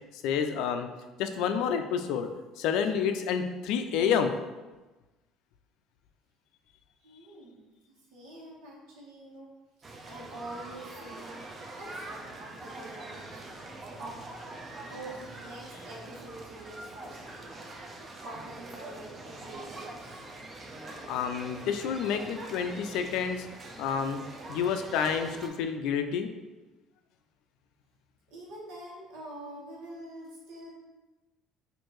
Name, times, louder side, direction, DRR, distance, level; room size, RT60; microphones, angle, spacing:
voice 1, 0.1-0.9 1.2-2.3 2.6-4.3 21.1-23.5 23.8-24.2 24.5-26.3, left 7 dB, 75° left, 7 dB, 0.3 m, -29 dB
voice 2, 7.0-7.7 8.1-9.5 9.8-11.5 11.8-13.5 13.9-14.2 14.8-17.5 18.1-20.2 28.3-30.8, right 1 dB, 85° right, -4 dB, 1.2 m, -46 dB
sound 1, 9.8-25.5, right 2 dB, 30° right, 0.5 m, -44 dB
4.4 x 2.6 x 3.0 m, 1.2 s
cardioid pair, 110°, 0 cm